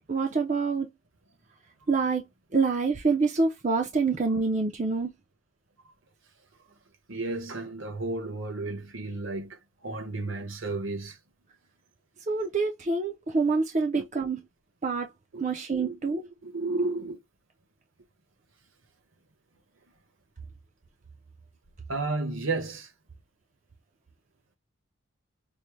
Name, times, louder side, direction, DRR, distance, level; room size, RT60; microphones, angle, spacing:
voice 1, 0.1-0.9 1.9-2.2 2.5-5.1 12.3-14.4 14.8-15.1 15.4-16.2, right 4 dB, 35° right, 0.5 m, -26 dB
voice 2, 7.1-9.6 9.8-11.2 13.9-14.0 15.3-15.4 15.7-15.9 16.4-17.2 21.9-22.9, right 3 dB, 70° right, 1.1 m, -32 dB
5.3 x 2.1 x 3.1 m
head